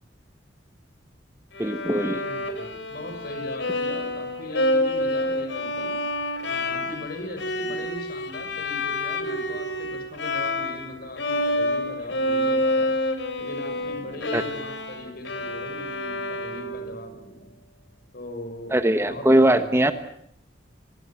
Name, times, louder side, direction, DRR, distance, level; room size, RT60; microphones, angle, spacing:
Bowed string instrument, 1.5-10.9 11.2-17.0, left 1 dB, 75° left, 3.6 m, -28 dB
voice 1, 1.6-2.2 14.3-14.4 18.7-19.9, right 1 dB, 15° right, 10 dB, 1.2 m, -20 dB
voice 2, 2.2-6.0 6.4-12.9 13.4-17.5 18.1-19.8, left 2 dB, 55° left, 6 dB, 6.5 m, -39 dB
27.0 x 21.0 x 7.6 m, 0.69 s
head